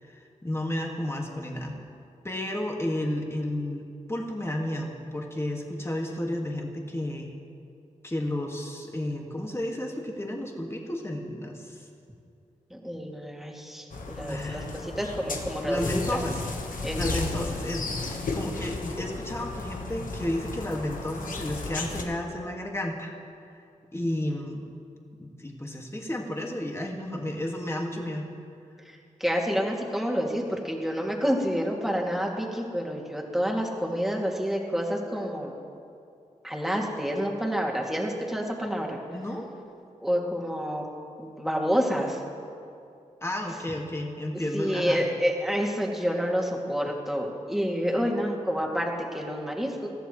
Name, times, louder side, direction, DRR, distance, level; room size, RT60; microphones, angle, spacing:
voice 1, 0.0-1.8 2.2-7.3 8.0-11.9 14.3-14.8 15.6-23.1 23.9-24.7 25.2-28.3 39.1-39.5 43.2-45.0, left 1 dB, 20° left, 0 dB, 1.9 m, -32 dB
voice 2, 12.7-16.2 16.8-17.0 28.9-35.5 36.4-39.0 40.0-40.8 41.2-42.2 44.5-49.9, equal, ahead, -2 dB, 2.4 m, -28 dB
sound 1, 13.9-22.0, left 3 dB, 75° left, 1.3 m, -34 dB
19.5 x 14.0 x 3.2 m, 2.5 s
cardioid pair, 50°, 14 cm